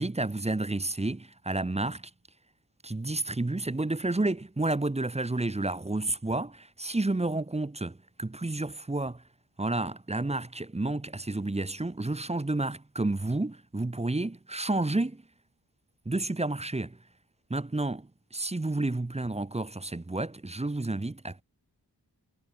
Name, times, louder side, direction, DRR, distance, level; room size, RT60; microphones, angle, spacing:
voice 1, 0.0-2.1 2.8-9.2 9.6-15.2 16.1-17.0 17.5-21.4, right 2 dB, 15° right, 0.8 m, -30 dB
wide cardioid pair, 45°, 41 cm